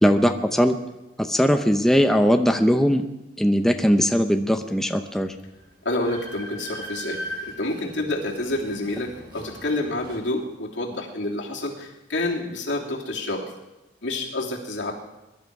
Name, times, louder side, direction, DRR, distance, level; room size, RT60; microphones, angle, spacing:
voice 1, 0.0-0.8 1.2-3.1 3.4-5.3, equal, ahead, 5 dB, 0.7 m, -20 dB
Train, 5.6-10.2, equal, 60° right, 4.5 m, -39 dB
voice 2, 5.8-13.5 14.0-14.9, left 2 dB, 80° left, -2 dB, 3.1 m, -28 dB
22.0 x 12.0 x 4.7 m, 1.0 s
head